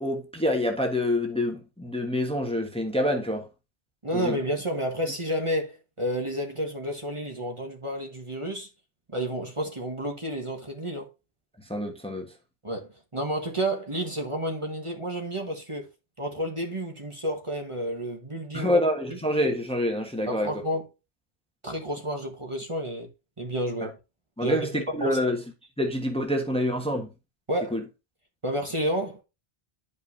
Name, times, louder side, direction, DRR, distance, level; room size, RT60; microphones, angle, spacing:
voice 1, 0.0-3.4 4.1-4.4 11.7-12.3 18.5-20.5 23.8-23.9 24.4-25.4 25.8-27.1 27.7-27.8, left 1 dB, 5° left, 1.2 m, -26 dB
voice 2, 4.0-8.7 9.1-11.1 12.6-15.9 16.2-18.8 19.1-19.2 20.3-20.9 21.6-23.1 23.4-24.0 24.4-25.2 27.5-27.8 28.4-29.2, right 1 dB, 30° right, 1.3 m, -30 dB
10.0 x 5.3 x 2.7 m
omnidirectional pair, 1.0 m